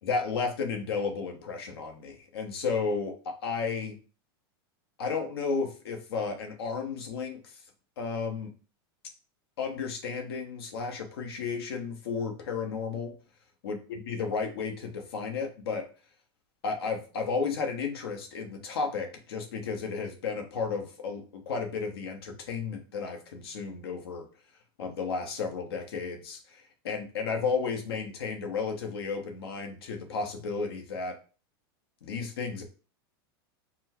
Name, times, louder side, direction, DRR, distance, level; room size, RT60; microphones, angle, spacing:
voice 1, 0.0-4.0 5.0-7.6 8.0-8.5 9.6-13.1 13.6-15.8 16.6-24.3 24.8-31.2 32.0-32.6, left 5 dB, 85° left, 3 dB, 1.2 m, -33 dB
4.4 x 2.2 x 4.3 m, 0.36 s
supercardioid pair, 135°, 13 cm